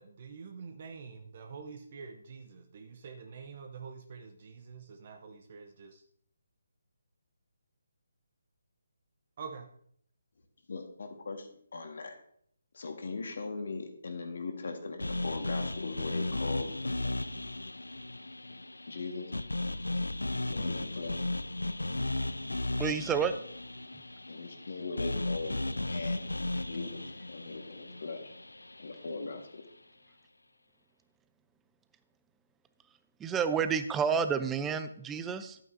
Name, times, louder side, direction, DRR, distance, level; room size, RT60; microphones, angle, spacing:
voice 1, 0.0-6.0 9.4-9.7, right 5 dB, 45° right, 5 dB, 0.8 m, -46 dB
voice 2, 10.7-12.2 12.7-17.2 18.5-18.6 18.9-19.3 20.5-21.3 24.3-26.3 26.6-27.0 27.3-28.3 28.8-29.6, left 3 dB, 60° left, 5 dB, 1.6 m, -39 dB
sound 1, 15.0-29.2, left 2 dB, 85° left, 0.3 m, -35 dB
voice 3, 22.8-23.4 33.2-35.6, right 6 dB, 10° right, 11 dB, 0.5 m, -30 dB
11.0 x 9.0 x 2.7 m, 0.66 s
figure-of-eight pair, 145°, 0 cm